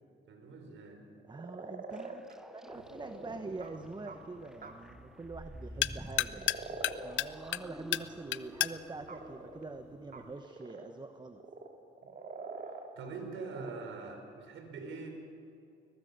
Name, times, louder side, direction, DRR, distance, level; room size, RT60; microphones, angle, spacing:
voice 1, 0.2-1.0 12.0-12.1 13.0-15.1, right 4 dB, 75° right, 5 dB, 4.2 m, -43 dB
sound 1, 1.2-4.2 4.6-4.7 6.2-7.0 7.4-9.6 10.1-10.9 11.2-12.9 13.2-13.9, right 4 dB, 45° right, 2.7 m, -45 dB
voice 2, 1.3-2.2 2.5-6.6 7.0-11.4, right 3 dB, 20° right, 8 dB, 1.2 m, -45 dB
sound 2, 1.9-10.4, equal, ahead, 0.7 m, -50 dB
sound 3, 2.7-10.4, left 14 dB, 75° left, 0.6 m, -38 dB
22.0 x 20.5 x 6.7 m, 2.7 s
cardioid pair, 90°, 20 cm